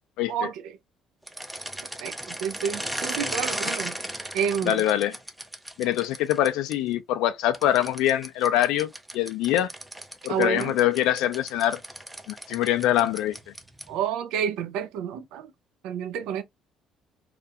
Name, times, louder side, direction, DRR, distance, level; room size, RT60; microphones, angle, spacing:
voice 1, 0.3-0.8 2.0-4.0 4.3-4.8 10.3-10.8 13.9-15.5 15.8-16.4, right 8 dB, 85° right, 0.3 m, -29 dB
sound 1, 1.2-6.7 7.5-14.0, right 1 dB, 5° right, 0.3 m, -36 dB
voice 2, 4.6-5.2 5.8-9.7 10.2-11.8 12.3-13.3, left 12 dB, 90° left, 0.3 m, -24 dB
2.4 x 2.1 x 2.6 m
cardioid pair, 140°, 0 cm